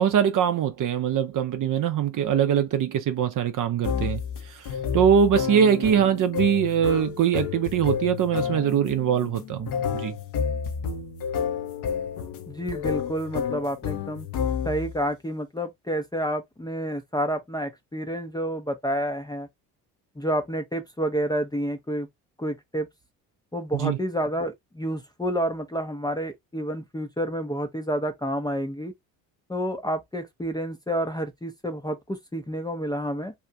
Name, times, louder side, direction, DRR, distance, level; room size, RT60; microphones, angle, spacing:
voice 1, 0.0-4.2 4.6-4.7 4.9-10.1 23.7-24.0, right 8 dB, 40° right, 0.7 m, -22 dB
sound 1, 3.8-15.0, left 7 dB, 55° left, 0.9 m, -30 dB
voice 2, 12.5-14.3 14.6-19.5 20.2-22.1 22.4-22.9 23.5-28.9 29.5-33.3, equal, 10° left, 0.7 m, -29 dB
2.9 x 2.4 x 3.4 m
figure-of-eight pair, 50°, 48 cm